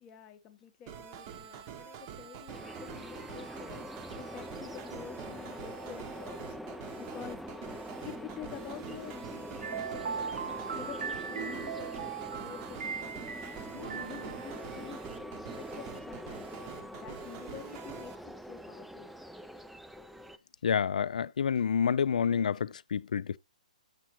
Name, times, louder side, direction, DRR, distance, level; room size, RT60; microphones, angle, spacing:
voice 1, 0.0-3.8 4.2-6.6 6.9-7.4 8.0-13.2 13.7-18.1 18.5-19.1, left 9 dB, 20° left, 0.7 m, -48 dB
sound 1, 0.9-18.2, right 8 dB, 25° right, 0.7 m, -46 dB
sound 2, 2.5-20.4, equal, ahead, 0.3 m, -44 dB
sound 3, 9.6-14.9, right 7 dB, 65° right, 0.7 m, -39 dB
voice 2, 20.6-23.4, left 7 dB, 75° left, 0.4 m, -28 dB
7.4 x 6.3 x 2.9 m
hypercardioid pair, 160°, 4 cm